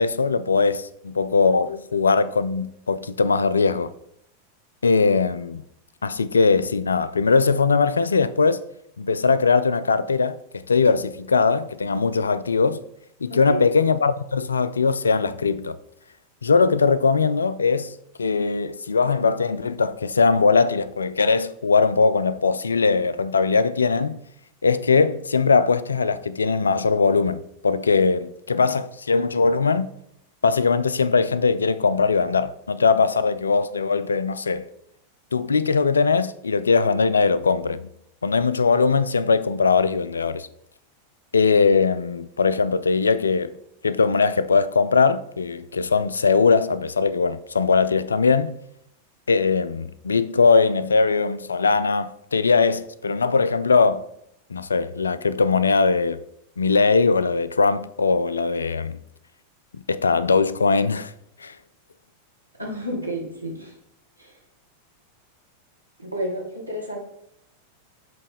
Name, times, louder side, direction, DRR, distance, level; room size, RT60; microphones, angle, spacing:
voice 1, 0.0-3.9 4.8-5.6 6.0-8.6 9.0-12.8 13.2-15.8 16.4-17.9 18.2-24.2 24.6-29.9 30.4-34.7 35.3-37.9 38.2-40.5 41.3-43.5 43.8-48.6 49.3-54.1 54.5-56.2 56.6-59.0 59.9-61.1 61.4-61.5, left 4 dB, 75° left, 0.3 m, -20 dB
voice 2, 13.3-13.6 62.6-63.7 64.2-64.3 66.0-67.0, equal, 90° right, 1.6 m, -31 dB
7.4 x 3.1 x 5.1 m
figure-of-eight pair, 90°, 0 cm